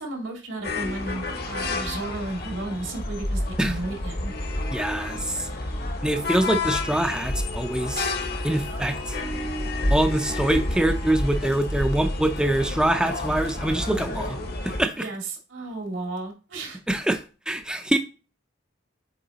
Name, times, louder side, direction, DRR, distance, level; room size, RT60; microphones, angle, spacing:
voice 1, 0.0-4.3 15.0-16.8, right 2 dB, 85° right, 2.1 m, -33 dB
sound 1, 0.6-14.9, left 2 dB, 55° left, 1.2 m, -30 dB
voice 2, 4.7-5.5 6.0-8.1 8.4-9.2 9.9-14.4 14.6-15.1 16.9-17.2 17.5-18.0, right 1 dB, 5° right, 0.4 m, -24 dB
7.9 x 3.8 x 4.0 m
head